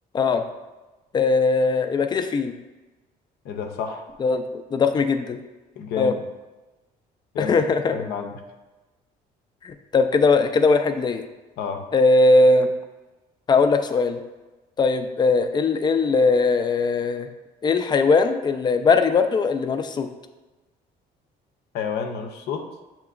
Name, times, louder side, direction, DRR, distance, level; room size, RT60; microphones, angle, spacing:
voice 1, 1.1-2.5 4.2-5.4 6.0-6.1 7.4-7.9 9.6-11.2 11.9-12.7 13.5-14.2 14.8-17.3 17.6-20.1, left 3 dB, 25° left, 8 dB, 0.3 m, -20 dB
voice 2, 3.4-4.0 5.8-6.2 7.3-7.6 7.9-8.3 11.6-11.9 21.7-22.7, left 6 dB, 75° left, 5 dB, 0.6 m, -29 dB
6.7 x 2.9 x 2.4 m, 1.1 s
cardioid pair, 110°, 17 cm